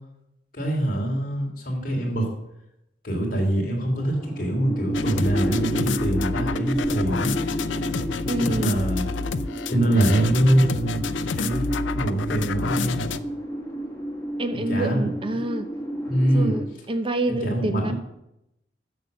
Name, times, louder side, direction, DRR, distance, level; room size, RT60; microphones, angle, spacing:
voice 1, 0.5-2.3 3.0-7.3 8.4-9.0 9.7-11.0 11.3-11.6 11.9-13.0 14.5-15.1 16.1-16.6 17.3-17.9, right 1 dB, 50° left, 0 dB, 2.9 m, -24 dB
sound 1, 4.0-16.6, equal, 15° left, 1.6 m, -31 dB
sound 2, 4.9-13.2, left 4 dB, 90° left, 0.5 m, -29 dB
voice 2, 8.3-8.8 14.4-15.7 16.3-17.9, right 1 dB, 30° right, 8 dB, 0.7 m, -27 dB
10.5 x 6.8 x 6.7 m, 0.85 s
head